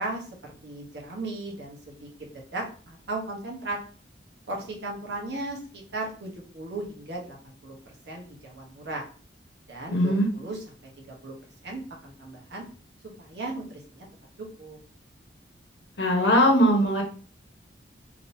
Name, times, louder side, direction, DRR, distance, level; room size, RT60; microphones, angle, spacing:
voice 1, 0.0-2.1 2.3-3.8 4.5-9.0 9.7-10.6 11.0-11.3 11.6-12.6 13.2-14.1 14.6-14.8, right 2 dB, 65° right, -1 dB, 1.0 m, -36 dB
voice 2, 9.9-10.3 16.0-17.0, equal, 70° left, 1 dB, 1.0 m, -20 dB
3.7 x 2.9 x 2.7 m, 0.42 s
head